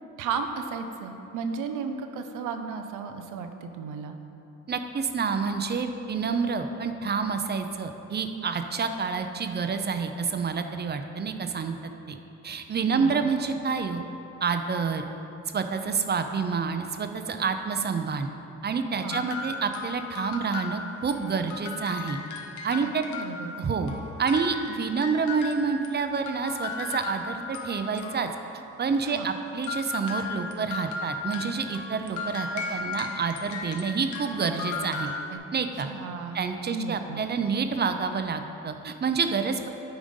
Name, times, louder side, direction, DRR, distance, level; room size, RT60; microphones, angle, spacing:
voice 1, 0.2-4.2 12.9-13.3 19.0-19.3 22.8-23.6 29.0-29.3 35.3-35.4 35.9-36.4 36.7-37.2, right 5 dB, 90° right, 7 dB, 0.7 m, -34 dB
voice 2, 4.7-11.8 12.1-12.2 12.4-14.0 14.4-15.1 15.5-18.3 18.6-22.2 22.6-23.0 23.6-23.9 24.2-28.3 28.8-35.1 35.5-35.9 36.3-39.7, right 5 dB, 35° right, 7 dB, 0.6 m, -28 dB
sound 1, 19.1-21.2 21.5-25.9 26.3-28.6 29.6-35.4, left 4 dB, 75° left, 1.0 m, -36 dB
8.9 x 5.0 x 5.4 m, 2.9 s
cardioid pair, 90°, 30 cm